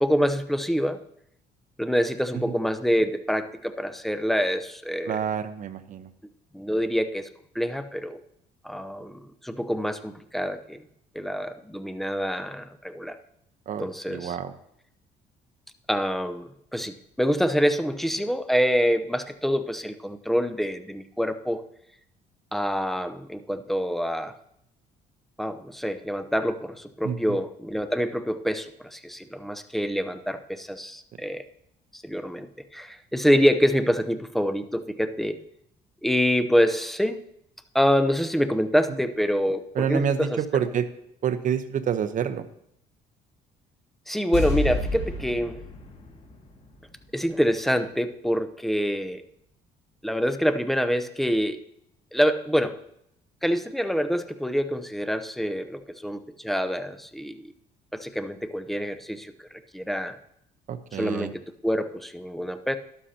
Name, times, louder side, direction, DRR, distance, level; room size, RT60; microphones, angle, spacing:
voice 1, 0.0-1.0 1.8-5.2 6.5-7.3 7.5-8.2 8.6-10.8 11.1-13.2 13.8-14.4 15.9-21.6 22.5-24.3 25.4-31.4 31.9-32.5 32.7-35.4 36.0-37.2 37.7-40.4 44.1-45.6 47.1-49.2 50.0-51.6 52.1-52.8 53.4-57.5 57.9-59.3 59.7-60.2 60.9-62.8, equal, ahead, 9 dB, 0.7 m, -26 dB
voice 2, 5.1-6.1 13.7-14.5 27.0-27.4 39.7-40.9 41.2-42.4 60.7-61.3, right 8 dB, 50° right, 10 dB, 0.9 m, -28 dB
sound 1, 44.3-47.5 47.8-47.9, left 3 dB, 40° left, 2.3 m, -31 dB
12.5 x 11.5 x 2.9 m, 0.73 s
cardioid pair, 110°, 17 cm